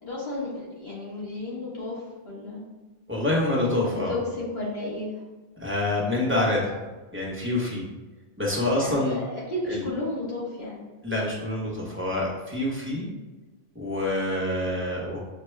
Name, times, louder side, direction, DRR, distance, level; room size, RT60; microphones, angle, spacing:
voice 1, 0.0-2.6 3.8-5.1 8.8-10.8 12.8-13.1, left 2 dB, 75° left, -6 dB, 1.6 m, -33 dB
voice 2, 3.1-4.1 5.6-6.7 7.1-7.8 8.4-9.2 9.6-9.8 11.0-13.1 13.7-15.2, left 1 dB, 15° right, -4 dB, 0.8 m, -26 dB
5.8 x 2.2 x 3.2 m, 1.2 s
omnidirectional pair, 1.0 m